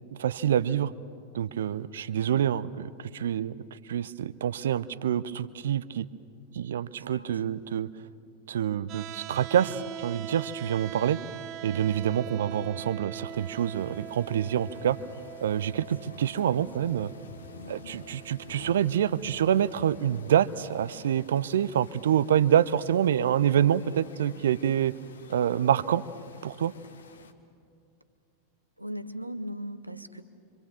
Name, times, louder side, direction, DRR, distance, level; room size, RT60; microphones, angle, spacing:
voice 1, 0.2-0.9 1.3-6.1 6.5-7.9 8.5-11.2 11.6-15.0 15.4-17.1 17.7-24.9 25.3-26.0 26.4-26.7, right 10 dB, 60° right, 17 dB, 0.6 m, -26 dB
voice 2, 7.0-7.4 10.7-11.2 16.0-16.6 17.6-17.8 28.8-30.2, equal, 90° right, 10 dB, 1.0 m, -40 dB
sound 1, 8.9-20.9, right 10 dB, 35° right, 1.2 m, -43 dB
sound 2, 13.2-27.3, left 5 dB, 70° left, 1.4 m, -51 dB
26.0 x 25.5 x 7.1 m, 2.3 s
figure-of-eight pair, 90°, 0 cm